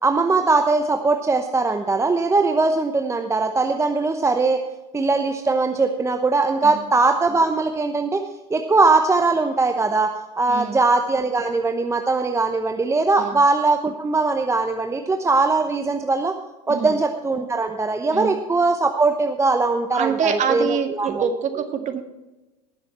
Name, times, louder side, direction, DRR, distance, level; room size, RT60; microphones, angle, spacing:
voice 1, 0.0-4.6 4.9-8.2 8.5-16.3 16.7-21.3, right 3 dB, 15° right, 5 dB, 0.9 m, -20 dB
voice 2, 10.5-10.8 13.2-13.4 16.7-17.0 18.1-18.4 19.9-22.0, right 7 dB, 35° right, 6 dB, 1.9 m, -25 dB
19.5 x 7.0 x 4.3 m, 1.1 s
hypercardioid pair, 90°, 21 cm